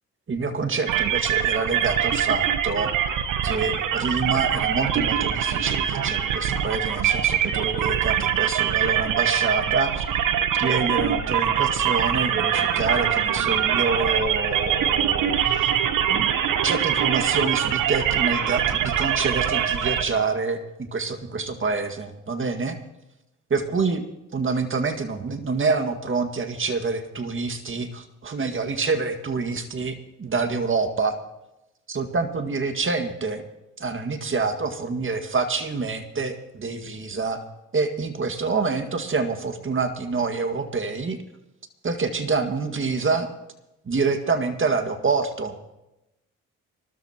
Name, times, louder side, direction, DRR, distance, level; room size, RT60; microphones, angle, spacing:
voice 1, 0.3-2.9 3.4-10.0 10.5-15.7 16.1-16.3 16.6-22.8 23.5-24.0 24.3-31.2 31.9-33.5 33.8-37.4 37.7-41.2 41.8-43.3 43.9-45.6, right 4 dB, 40° right, 6 dB, 2.1 m, -26 dB
sound 1, 0.9-20.0, right 9 dB, 75° right, 1.1 m, -23 dB
25.0 x 13.0 x 3.0 m, 0.93 s
supercardioid pair, 60°, 32 cm